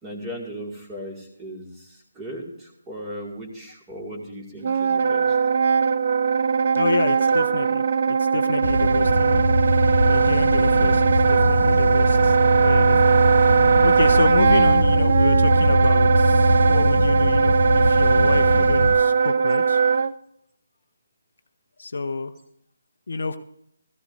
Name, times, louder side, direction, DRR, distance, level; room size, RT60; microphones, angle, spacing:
voice 1, 0.0-5.4, equal, 15° right, -1 dB, 2.2 m, -37 dB
Wind instrument woodwind instrument, 4.6-20.1, right 5 dB, 45° right, 0.4 m, -20 dB
voice 2, 6.7-9.6 10.1-12.4 12.6-19.8 21.8-22.3 23.1-23.4, left 4 dB, 55° left, 9 dB, 0.7 m, -28 dB
sound 1, 8.6-19.0, equal, 80° left, 1.2 m, -21 dB
17.5 x 14.0 x 2.6 m, 0.73 s
figure-of-eight pair, 150°, 0 cm